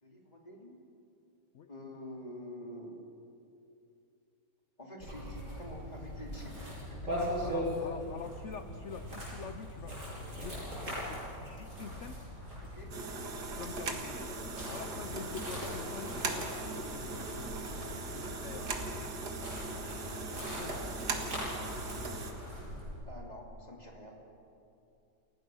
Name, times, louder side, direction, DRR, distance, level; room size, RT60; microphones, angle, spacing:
voice 1, 0.0-0.8 1.7-3.0 4.8-7.9 12.6-12.9 14.9-15.2 23.1-24.2, equal, 20° left, 0 dB, 2.9 m, -48 dB
sound 1, 5.0-23.0, equal, 45° right, 7.9 m, -40 dB
voice 2, 7.4-12.2 13.5-14.3 14.7-17.7 18.1-18.7 20.6-21.0, left 7 dB, 60° left, 10 dB, 0.8 m, -47 dB
sound 2, 12.9-22.3, right 3 dB, 65° right, 2.3 m, -39 dB
28.5 x 16.0 x 6.3 m, 2.7 s
omnidirectional pair, 1.9 m